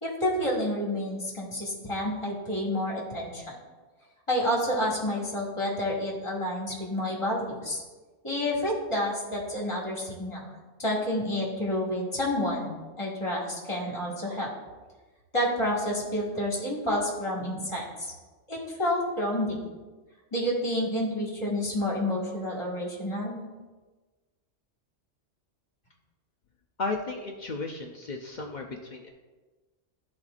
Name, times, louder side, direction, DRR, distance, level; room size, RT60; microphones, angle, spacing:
voice 1, 0.0-3.5 4.3-7.8 8.2-10.5 10.8-12.7 13.0-14.5 15.3-18.1 18.5-19.6 20.3-23.4, left 1 dB, 25° left, -4 dB, 1.6 m, -29 dB
voice 2, 26.8-29.1, left 3 dB, 55° left, 1 dB, 0.5 m, -34 dB
12.0 x 4.3 x 2.4 m, 1.3 s
omnidirectional pair, 1.2 m